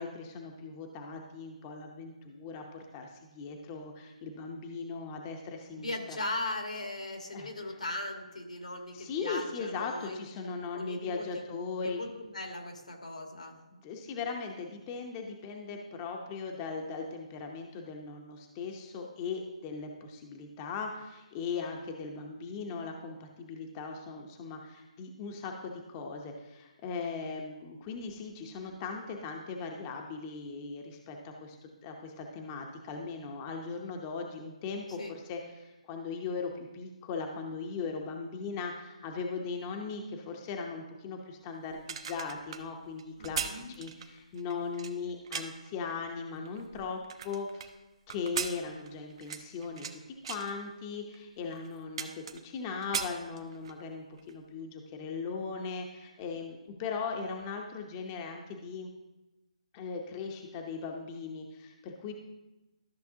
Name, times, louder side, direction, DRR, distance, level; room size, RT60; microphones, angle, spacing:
voice 1, 0.0-6.2 7.3-7.8 8.9-12.0 13.7-47.7 48.1-50.0 50.3-58.9 59.7-62.1, left 5 dB, 25° left, 2 dB, 0.8 m, -39 dB
voice 2, 5.7-10.3 10.7-11.1 11.8-13.6 35.0-35.1 43.2-43.7, left 2 dB, 85° left, 2 dB, 2.0 m, -38 dB
sound 1, 41.7-45.7 46.3-47.7 48.1-50.0 50.2-50.5 51.1-51.2 51.5-52.6 52.8-53.8 54.2-54.4, right 7 dB, 45° right, 0.8 m, -38 dB
13.0 x 6.4 x 2.8 m, 1.1 s
figure-of-eight pair, 145°, 4 cm